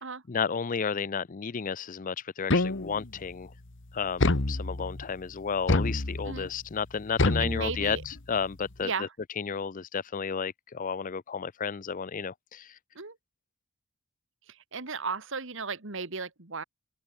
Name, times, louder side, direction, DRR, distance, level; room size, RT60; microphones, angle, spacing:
voice 1, 0.3-3.5 3.9-9.1 9.4-12.8, left 6 dB, 40° left, 0.5 m, -32 dB
sound 1, 2.5-3.2 4.2-5.0 5.7-6.5 7.2-8.2, left 2 dB, 60° left, 1.4 m, -27 dB
voice 2, 7.4-8.0 8.8-9.1 13.0-13.2 14.5-16.6, right 4 dB, 65° right, 2.1 m, -35 dB
open air
head